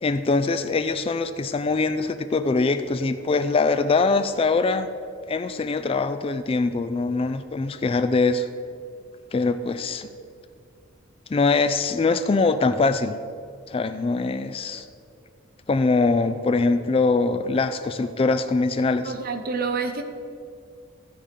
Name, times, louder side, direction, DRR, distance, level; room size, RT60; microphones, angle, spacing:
voice 1, 0.0-4.9 5.3-8.5 9.3-10.1 11.3-13.2 13.7-14.9 15.7-19.1, left 3 dB, 25° left, 10 dB, 0.3 m, -23 dB
voice 2, 19.0-20.0, right 4 dB, 45° right, 7 dB, 0.8 m, -28 dB
14.5 x 5.0 x 5.3 m, 2.3 s
head